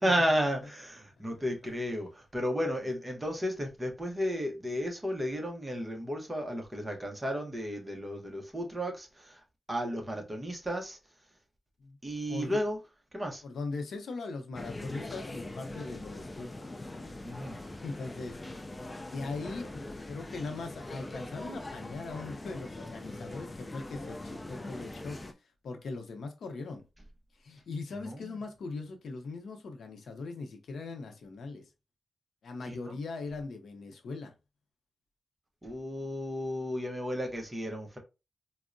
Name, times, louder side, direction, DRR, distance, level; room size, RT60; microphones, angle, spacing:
voice 1, 0.0-9.4 9.7-11.0 12.0-12.8 13.1-13.4 17.2-17.6 28.0-28.2 32.7-33.0 35.6-38.0, equal, 15° right, 0.7 m, -33 dB
voice 2, 13.4-16.7 17.5-18.4 18.8-25.2 25.6-26.9 27.4-31.6 32.4-34.3, left 3 dB, 75° left, 0.6 m, -40 dB
sound 1, 14.5-25.3, left 2 dB, 20° left, 0.3 m, -42 dB
4.4 x 2.0 x 2.5 m
wide cardioid pair, 135°, 0 cm